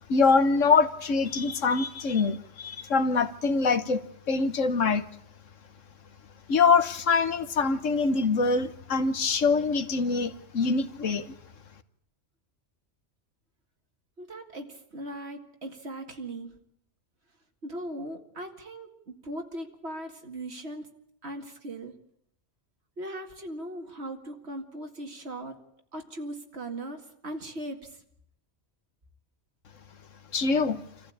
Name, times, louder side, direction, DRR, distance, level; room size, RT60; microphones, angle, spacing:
voice 1, 0.1-4.0 4.3-5.0 6.5-11.3 30.3-30.8, left 4 dB, 80° left, 11 dB, 1.5 m, -24 dB
voice 2, 14.2-16.5 17.6-20.9 21.2-21.9 23.0-25.6 25.9-27.8, right 1 dB, 55° right, 4 dB, 2.4 m, -39 dB
26.0 x 14.5 x 8.6 m, 0.72 s
omnidirectional pair, 1.3 m